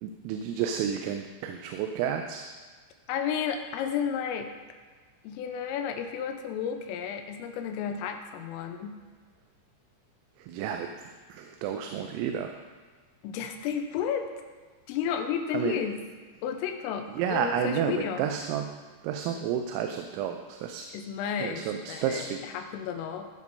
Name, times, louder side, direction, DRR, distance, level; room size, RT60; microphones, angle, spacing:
voice 1, 0.0-2.5 10.4-12.6 15.5-15.8 17.2-18.8 19.0-20.8 21.4-22.4, right 8 dB, 90° right, 5 dB, 3.3 m, -31 dB
voice 2, 3.1-4.5 5.2-9.0 13.2-14.3 14.9-16.1 16.4-18.3 20.9-23.3, left 8 dB, 90° left, 6 dB, 3.4 m, -32 dB
15.0 x 5.3 x 5.4 m, 1.5 s
omnidirectional pair, 5.8 m